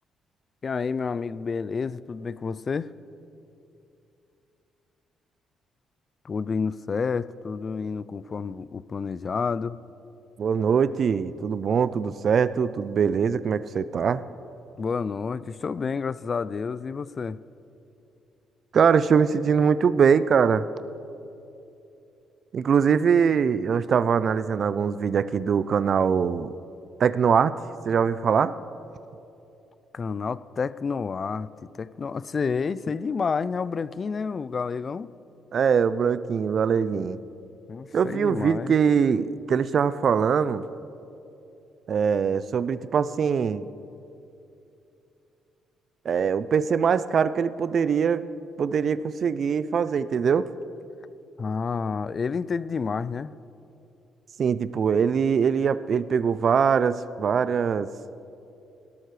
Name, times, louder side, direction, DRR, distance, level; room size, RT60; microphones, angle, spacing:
voice 1, 0.6-2.9 6.2-9.8 14.8-17.4 29.9-31.5 31.7-35.1 37.7-38.7 51.4-53.3, left 5 dB, 40° left, 17 dB, 0.3 m, -29 dB
voice 2, 10.4-14.2 18.7-20.7 22.5-26.5 27.0-27.6 27.9-28.6 35.5-37.2 37.9-40.6 41.9-43.7 46.1-48.3 48.6-50.5 54.4-57.9, right 6 dB, 55° right, 15 dB, 0.4 m, -22 dB
17.5 x 12.5 x 3.2 m, 2.8 s
cardioid pair, 90°, 0 cm